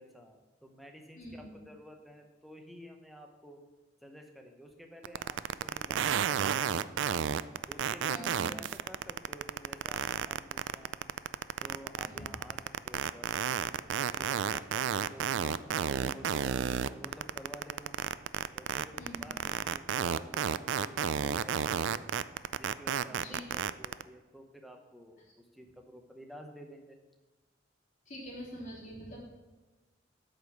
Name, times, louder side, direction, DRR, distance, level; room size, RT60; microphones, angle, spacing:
voice 1, 0.0-3.6 4.0-7.1 7.7-11.0 11.6-15.4 15.9-18.0 18.5-22.2 22.6-27.0, equal, ahead, 3 dB, 0.8 m, -51 dB
sound 1, 5.0-24.0, right 8 dB, 70° right, 0.3 m, -31 dB
voice 2, 8.1-8.5 12.0-12.3 19.0-19.3 23.1-23.4 28.1-29.2, equal, 40° left, -5 dB, 3.1 m, -44 dB
8.2 x 5.1 x 6.3 m, 1.2 s
head